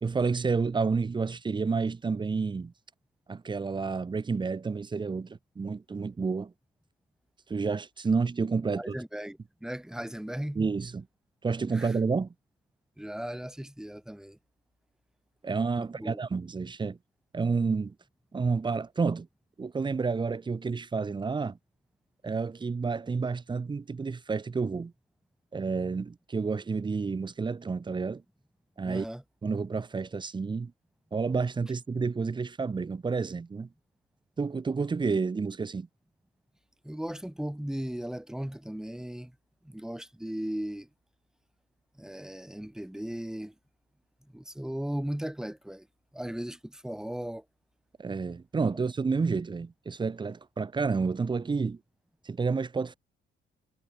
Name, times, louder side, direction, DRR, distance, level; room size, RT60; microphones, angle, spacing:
voice 1, 0.0-2.7 3.3-6.5 7.5-9.0 10.5-11.1 11.4-12.3 15.4-17.0 17.3-17.9 18.3-19.3 19.6-21.6 22.2-24.9 25.5-28.2 28.8-29.1 29.4-30.7 31.1-33.7 34.4-35.9 48.0-51.8 52.2-52.9, right 4 dB, 20° right, 3.1 m, -30 dB
voice 2, 8.7-10.6 11.7-12.0 13.0-14.4 15.7-16.2 28.8-29.2 36.8-39.3 39.6-40.9 42.0-43.5 44.3-45.9 46.1-47.4, right 1 dB, 5° right, 7.8 m, -37 dB
cardioid pair, 150°, 20 cm